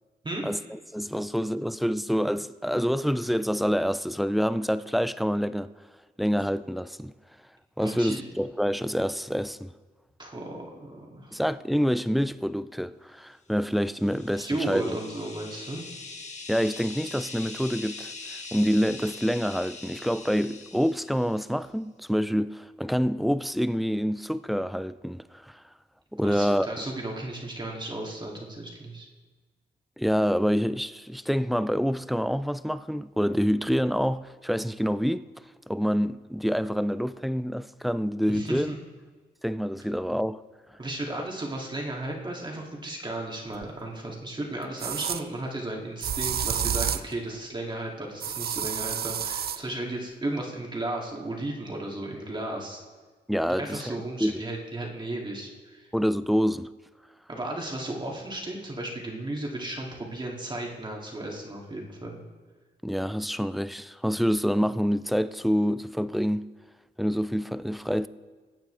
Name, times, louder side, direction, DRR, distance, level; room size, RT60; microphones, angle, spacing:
voice 1, 0.4-5.7 6.2-7.1 7.8-9.7 11.3-15.0 16.5-25.6 26.1-26.8 30.0-35.3 35.7-38.7 39.4-40.4 53.3-53.9 54.2-54.4 55.9-56.7 62.8-66.5 67.0-68.1, equal, ahead, 0.4 m, -27 dB
voice 2, 7.8-8.2 10.2-11.4 14.4-15.8 26.2-29.1 38.3-38.8 40.8-52.8 53.5-55.9 57.3-62.2, right 1 dB, 25° right, 2.5 m, -34 dB
sound 1, 13.7-21.5, left 3 dB, 40° left, 1.7 m, -42 dB
sound 2, 43.6-43.7 44.8-45.2 46.0-47.1 48.2-49.6, right 9 dB, 55° right, 0.5 m, -29 dB
22.0 x 8.9 x 3.4 m
cardioid pair, 105°, 19 cm